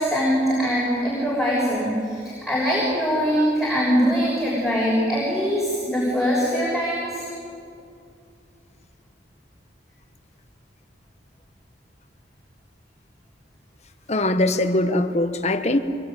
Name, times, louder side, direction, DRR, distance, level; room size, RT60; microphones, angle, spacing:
voice 1, 0.0-7.3, equal, ahead, -6 dB, 6.5 m, -22 dB
voice 2, 14.1-15.8, left 1 dB, 40° left, 7 dB, 1.4 m, -21 dB
26.0 x 22.5 x 9.2 m, 2.5 s
head